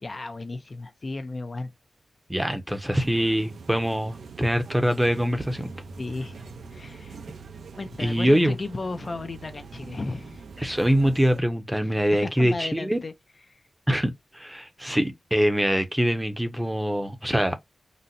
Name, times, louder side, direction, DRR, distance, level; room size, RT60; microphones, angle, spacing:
voice 1, 0.0-1.7 6.0-6.4 6.7-7.2 7.8-10.4 11.8-13.1 13.5-13.6, left 3 dB, 40° left, 0.4 m, -35 dB
voice 2, 2.3-5.7 8.0-8.6 10.6-13.0 13.9-17.6, equal, 10° right, 0.6 m, -24 dB
sound 1, 3.0-11.4, right 4 dB, 90° right, 0.5 m, -43 dB
3.9 x 2.1 x 2.5 m
wide cardioid pair, 115°, 0 cm